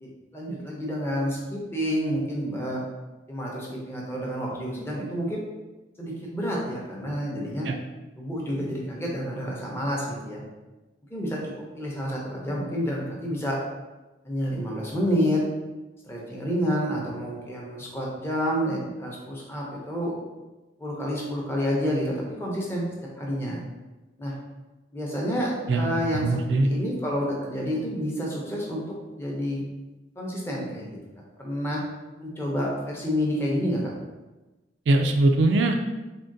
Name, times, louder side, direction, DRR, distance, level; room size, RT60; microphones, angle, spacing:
voice 1, 0.0-2.8 3.3-5.4 6.0-7.7 8.2-10.4 11.1-11.4 11.7-13.6 14.2-15.4 16.0-20.2 20.8-22.9 23.2-23.6 24.2-24.3 24.9-29.6 30.2-31.0 31.4-31.8 32.2-33.9, equal, 15° left, -3 dB, 0.6 m, -29 dB
voice 2, 26.2-26.7 34.9-35.7, right 2 dB, 70° right, 4 dB, 0.3 m, -21 dB
3.6 x 2.2 x 2.5 m, 1.1 s
head